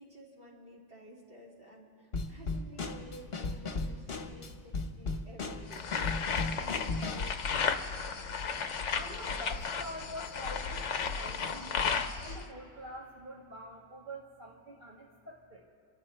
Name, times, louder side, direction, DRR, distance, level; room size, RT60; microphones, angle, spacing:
voice 1, 0.0-5.9, right 1 dB, 55° right, -5 dB, 3.7 m, -53 dB
Drum kit / Snare drum, 2.1-7.3, left 3 dB, 55° left, 1.3 m, -36 dB
sound 1, 5.7-12.4, left 6 dB, 75° left, 1.2 m, -34 dB
voice 2, 8.9-15.6, equal, 40° right, -4 dB, 1.9 m, -46 dB
29.5 x 14.0 x 3.4 m, 2.4 s
omnidirectional pair, 1.2 m